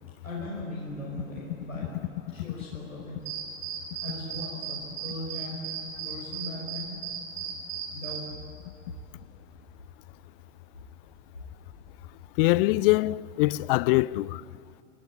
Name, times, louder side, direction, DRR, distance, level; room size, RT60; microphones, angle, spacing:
voice 1, 0.2-2.0 2.3-3.2 4.0-5.6 6.0-6.9 7.9-8.3, left 1 dB, 90° left, 6.0 m, -38 dB
sound 1, 3.3-8.2, right 8 dB, 70° right, 6.8 m, -36 dB
voice 2, 12.4-14.4, left 19 dB, 45° left, 0.5 m, -23 dB
27.0 x 18.0 x 9.9 m
figure-of-eight pair, 90°, 40 cm